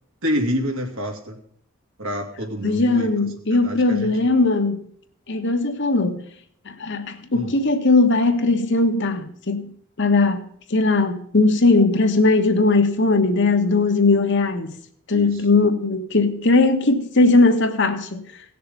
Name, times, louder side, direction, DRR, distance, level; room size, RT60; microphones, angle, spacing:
voice 1, 0.2-1.4 2.0-3.1 3.6-4.1 7.3-7.6 15.1-15.4, equal, 75° right, 2.6 m, -27 dB
voice 2, 2.6-4.8 5.3-6.2 6.8-9.7 10.0-10.4 10.7-14.7 15.1-18.2, left 3 dB, 60° left, 1.4 m, -19 dB
17.0 x 6.8 x 5.5 m
head